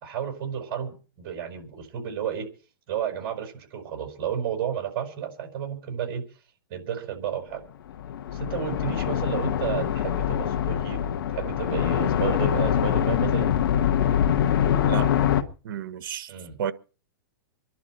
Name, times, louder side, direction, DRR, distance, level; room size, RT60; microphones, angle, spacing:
voice 1, 0.0-2.5 2.9-6.2 6.7-7.6 8.3-13.5 16.3-16.6, right 8 dB, 45° right, 5.1 m, -32 dB
sound 1, 7.9-15.4, left 9 dB, 70° left, 1.7 m, -24 dB
voice 2, 15.6-16.3 16.6-16.7, right 8 dB, 65° right, 1.2 m, -31 dB
25.5 x 11.5 x 4.4 m
hypercardioid pair, 150°, 12 cm